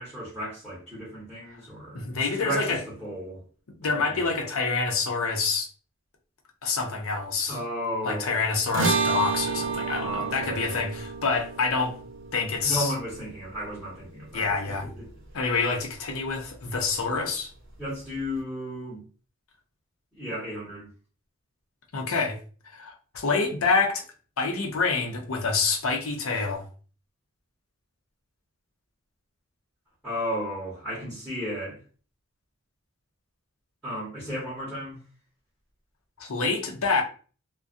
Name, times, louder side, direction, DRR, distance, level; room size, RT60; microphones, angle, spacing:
voice 1, 0.0-3.4 3.9-4.2 7.5-8.4 9.9-10.8 12.6-14.5 14.8-15.1 17.8-19.0 20.2-20.9 30.0-31.8 33.8-35.0, equal, ahead, 1.1 m, -34 dB
voice 2, 1.9-2.8 3.8-5.7 6.6-7.6 8.0-11.9 12.3-12.9 14.3-14.9 15.3-17.5 21.9-22.4 22.7-24.0 24.4-26.7 36.2-37.0, left 4 dB, 75° left, 0.6 m, -27 dB
sound 1, 8.7-15.3, right 4 dB, 65° right, 0.7 m, -31 dB
2.4 x 2.2 x 2.5 m
head